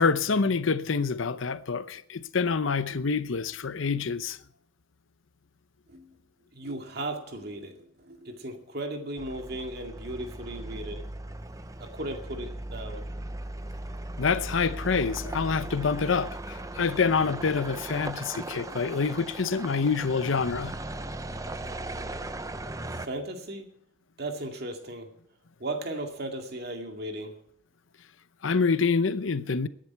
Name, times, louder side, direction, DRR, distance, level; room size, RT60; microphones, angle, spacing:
voice 1, 0.0-4.4 14.2-20.8 28.4-29.7, left 5 dB, 75° left, 0.7 m, -26 dB
voice 2, 6.5-11.0 11.8-13.0 22.9-23.7 24.2-25.1 25.6-27.3, right 1 dB, 50° right, 2.2 m, -36 dB
sound 1, 9.2-23.1, right 2 dB, 15° right, 0.6 m, -38 dB
19.0 x 10.5 x 4.6 m
head